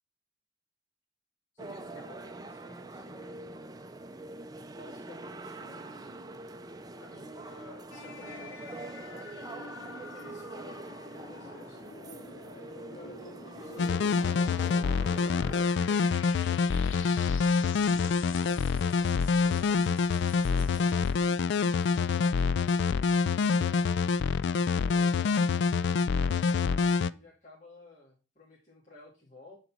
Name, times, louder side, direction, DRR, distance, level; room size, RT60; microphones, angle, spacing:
voice 1, 1.5-3.5 4.7-6.4 7.0-9.3 10.1-11.9 12.6-14.5 15.1-19.8 20.5-21.4 21.6-23.9 24.8-25.6 26.1-29.6, left 1 dB, 35° left, -5 dB, 2.2 m, -52 dB
sound 1, 1.6-15.6, right 2 dB, 20° right, 0.5 m, -44 dB
sound 2, 7.9-21.7, left 4 dB, 75° left, 1.0 m, -47 dB
sound 3, 13.8-27.1, left 5 dB, 60° left, 0.3 m, -26 dB
8.1 x 4.0 x 6.0 m, 0.34 s
head